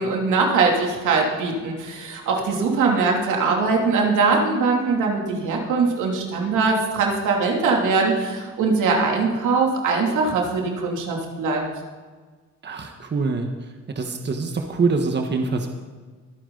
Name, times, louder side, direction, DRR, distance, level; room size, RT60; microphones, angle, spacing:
voice 1, 0.0-11.6, right 4 dB, 80° right, 0 dB, 3.0 m, -21 dB
voice 2, 12.6-13.5 13.9-15.7, right 4 dB, 35° right, 4 dB, 1.5 m, -24 dB
23.5 x 9.3 x 4.0 m, 1.4 s
cardioid pair, 90°, 30 cm